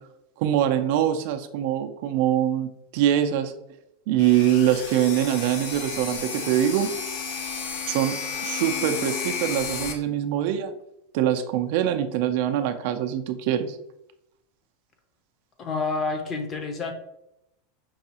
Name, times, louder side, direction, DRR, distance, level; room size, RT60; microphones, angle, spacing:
voice 1, 0.4-3.5 4.1-6.9 7.9-10.7 11.1-13.8, right 11 dB, 60° right, 7 dB, 0.4 m, -24 dB
sound 1, 4.2-9.9, left 6 dB, 70° left, 0.7 m, -32 dB
voice 2, 15.6-16.9, left 3 dB, 25° left, 5 dB, 0.6 m, -28 dB
5.3 x 2.3 x 2.8 m, 0.82 s
supercardioid pair, 140°, 0 cm